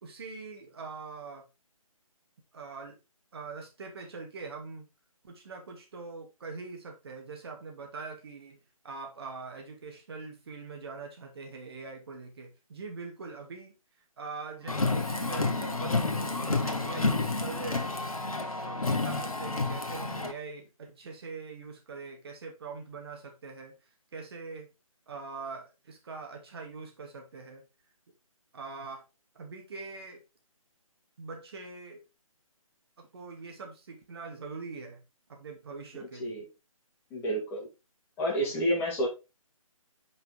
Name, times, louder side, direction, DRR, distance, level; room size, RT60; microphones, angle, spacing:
voice 1, 0.0-1.4 2.5-2.9 3.3-4.9 5.2-8.6 8.8-13.7 14.2-17.9 18.4-23.8 24.1-24.7 25.1-27.6 28.5-29.0 29.3-30.2 31.2-32.0 33.0-35.0 35.3-36.4, right 4 dB, 45° right, 2.2 m, -43 dB
Car, 14.7-20.3, left 3 dB, 75° left, 1.2 m, -30 dB
voice 2, 35.9-36.5 37.1-37.7 38.2-39.1, equal, 10° left, 2.0 m, -30 dB
5.7 x 4.9 x 3.8 m
figure-of-eight pair, 145°, 18 cm